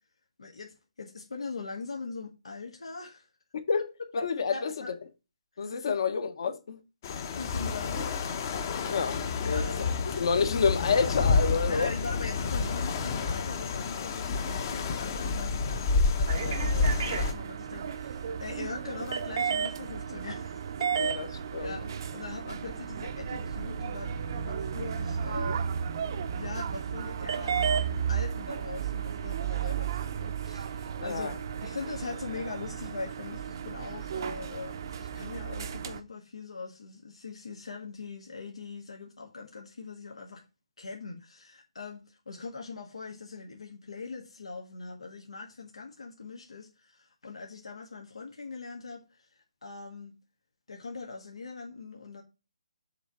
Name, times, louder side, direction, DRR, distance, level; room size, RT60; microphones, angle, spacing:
voice 1, 0.4-3.3 4.5-4.9 5.5-6.0 7.4-8.1 9.4-9.9 11.6-21.1 21.6-25.6 26.3-31.3 31.6-40.4 40.8-50.2 50.7-52.2, left 4 dB, 85° left, 1.7 m, -41 dB
voice 2, 4.1-4.7 5.6-6.8 8.9-9.7 10.1-11.9 16.4-16.6 21.0-21.3 21.5-21.8 31.0-31.4, left 5 dB, 55° left, 1.3 m, -28 dB
sound 1, 7.0-17.3, left 4 dB, 35° left, 0.9 m, -29 dB
sound 2, 16.3-36.0, right 7 dB, 45° right, 0.7 m, -33 dB
7.8 x 3.3 x 5.7 m
hypercardioid pair, 160°, 3 cm